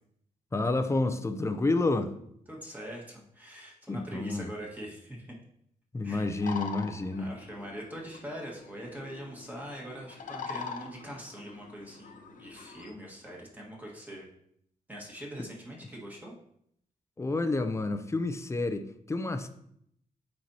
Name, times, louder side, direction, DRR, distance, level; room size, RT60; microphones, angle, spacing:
voice 1, 0.5-2.1 3.9-4.5 5.9-7.3 17.2-19.5, left 2 dB, 20° left, 8 dB, 0.6 m, -29 dB
voice 2, 2.5-5.3 6.0-6.5 7.2-14.3 14.9-16.3, equal, 10° right, -2 dB, 1.6 m, -43 dB
sound 1, 6.4-12.9, left 5 dB, 65° left, 0.8 m, -43 dB
9.2 x 4.4 x 2.8 m, 0.72 s
cardioid pair, 105°, 15 cm